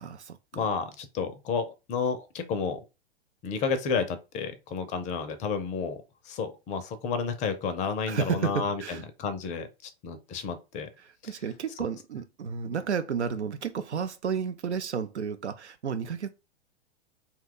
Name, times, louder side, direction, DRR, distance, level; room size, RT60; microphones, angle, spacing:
voice 1, 0.0-0.7 8.1-9.0 11.0-16.3, right 7 dB, 85° right, 0.5 m, -32 dB
voice 2, 0.5-2.8 3.4-10.9, left 5 dB, 20° left, 0.5 m, -31 dB
2.7 x 2.3 x 3.7 m
figure-of-eight pair, 100°, 34 cm